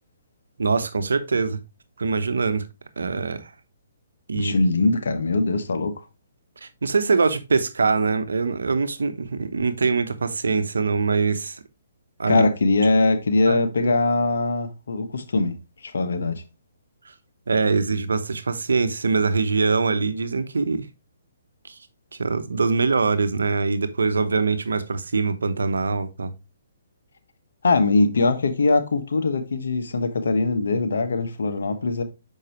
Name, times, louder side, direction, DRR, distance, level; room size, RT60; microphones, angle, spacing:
voice 1, 0.6-1.6 2.0-2.6 3.0-3.5 4.3-4.5 6.6-11.6 12.2-12.4 13.5-13.9 17.5-20.9 21.7-21.8 22.1-26.3, right 4 dB, 85° right, 0.9 m, -23 dB
voice 2, 4.3-6.0 12.3-15.6 15.8-16.4 27.6-32.0, left 3 dB, 75° left, 1.2 m, -21 dB
6.5 x 5.3 x 3.0 m
hypercardioid pair, 140°, 0 cm